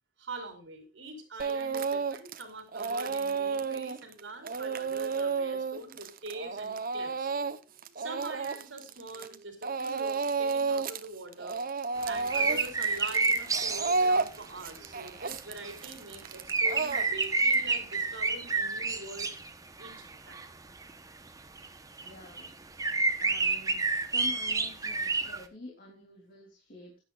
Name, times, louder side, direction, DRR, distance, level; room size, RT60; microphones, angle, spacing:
voice 1, 0.2-7.3 8.0-11.6 12.0-19.3 19.8-20.6, right 2 dB, 80° right, 6 dB, 3.5 m, -44 dB
Speech / Crying sobbing, 1.4-2.4 2.7-9.4 9.6-11.0 11.3-17.5, right 4 dB, 50° right, 0.9 m, -32 dB
sound 1, 12.1-14.0 15.6-15.8 16.5-19.5 19.8-20.5 20.8-20.9 21.6-21.7 22.0-22.1 22.4-22.5 22.8-25.4, right 3 dB, 20° right, 1.0 m, -29 dB
voice 2, 22.0-22.5 23.2-27.0, left 2 dB, 50° left, -1 dB, 3.2 m, -48 dB
16.0 x 10.5 x 2.5 m, 0.29 s
head